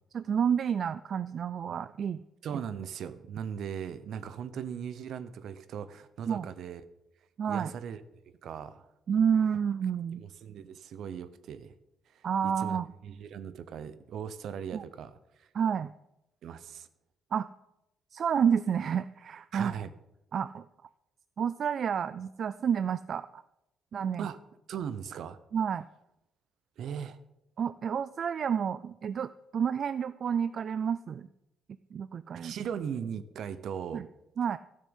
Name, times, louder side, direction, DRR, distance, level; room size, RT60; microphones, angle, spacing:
voice 1, 0.1-2.2 6.3-6.5 7.4-7.7 9.1-10.2 12.2-12.9 14.7-14.8 15.5-15.9 17.3-17.5 18.1-19.7 20.3-20.6 21.4-23.4 23.9-24.3 25.5-25.8 27.6-31.3 31.9-32.5 33.9-34.1 34.4-34.6, right 7 dB, 55° right, 15 dB, 0.4 m, -29 dB
voice 2, 2.4-6.8 7.5-8.0 8.4-8.9 10.1-11.7 12.1-15.5 16.4-16.9 19.5-19.9 24.2-24.4 24.7-25.4 26.8-27.2 32.3-34.0, right 8 dB, 70° right, 14 dB, 0.9 m, -39 dB
12.5 x 6.6 x 8.2 m, 0.89 s
cardioid pair, 90°, 0 cm